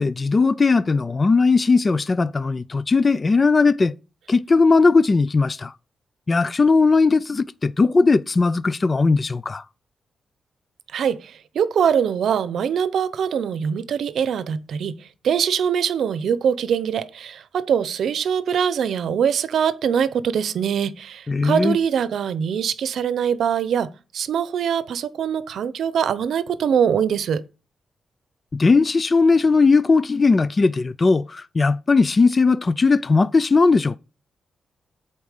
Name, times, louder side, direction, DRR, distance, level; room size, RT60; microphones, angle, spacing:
voice 1, 0.0-3.9 4.3-5.7 6.3-9.6 21.3-21.8 28.5-34.0, left 4 dB, 35° left, 0.4 m, -18 dB
voice 2, 10.9-14.9 15.2-27.4, right 8 dB, 80° right, 0.7 m, -23 dB
8.3 x 4.3 x 6.5 m
cardioid pair, 95°, 0 cm